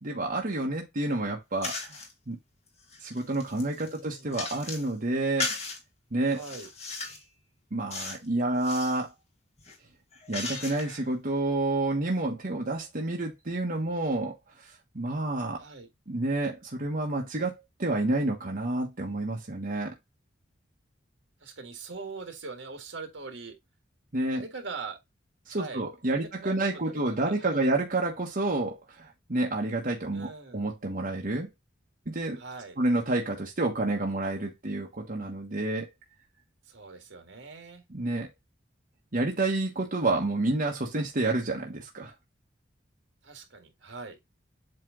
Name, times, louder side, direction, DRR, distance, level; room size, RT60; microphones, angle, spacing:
voice 1, 0.0-2.0 2.3-2.4 3.0-5.6 6.1-6.4 7.7-9.1 10.3-15.6 16.1-19.9 24.1-24.4 25.5-31.5 32.1-32.4 32.8-35.9 37.9-38.3 39.1-42.1, right 2 dB, 50° right, 1.3 m, -29 dB
sound 1, 1.6-2.1 2.7-4.9 5.4-5.8 6.3-7.3 7.9-8.3 8.5-9.0 9.6-11.1, left 3 dB, 35° left, 1.9 m, -36 dB
voice 2, 3.8-4.5 6.3-6.7 15.6-15.9 21.4-23.6 24.3-25.0 25.5-27.7 30.1-30.7 32.4-32.8 36.6-37.8 43.2-44.2, right 4 dB, 70° right, 1.8 m, -42 dB
7.9 x 3.3 x 3.7 m
head